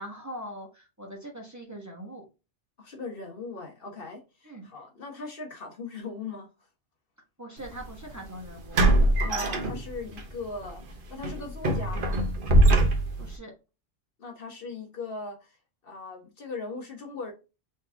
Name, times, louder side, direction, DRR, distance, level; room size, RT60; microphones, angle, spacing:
voice 1, 0.0-2.2 4.4-4.7 7.4-8.9 13.2-13.5, equal, 15° right, 1.2 m, -42 dB
voice 2, 2.8-6.5 9.2-10.8 11.1-12.2 14.2-15.6 15.8-17.3, left 4 dB, 55° left, 1.2 m, -39 dB
sound 1, 7.6-7.8 8.7-10.2 10.6-10.8 11.2-13.3, right 1 dB, 50° right, 1.0 m, -22 dB
4.0 x 3.3 x 3.4 m
omnidirectional pair, 1.2 m